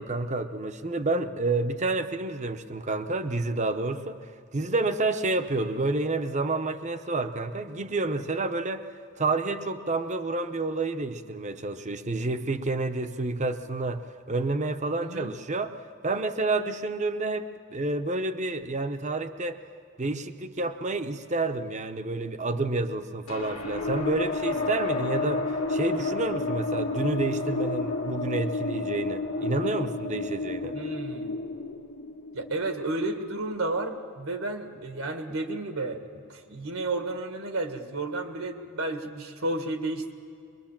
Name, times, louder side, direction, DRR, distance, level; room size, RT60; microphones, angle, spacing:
voice 1, 0.0-4.2 4.5-8.9 9.2-14.0 14.3-15.8 16.0-19.6 20.0-30.8, right 3 dB, 35° right, 9 dB, 0.8 m, -29 dB
voice 2, 15.0-15.3 30.7-31.4 32.3-40.1, right 2 dB, 75° right, 6 dB, 1.8 m, -32 dB
sound 1, 23.3-33.9, left 3 dB, 75° left, 1.7 m, -31 dB
23.0 x 22.5 x 7.4 m, 2.3 s
head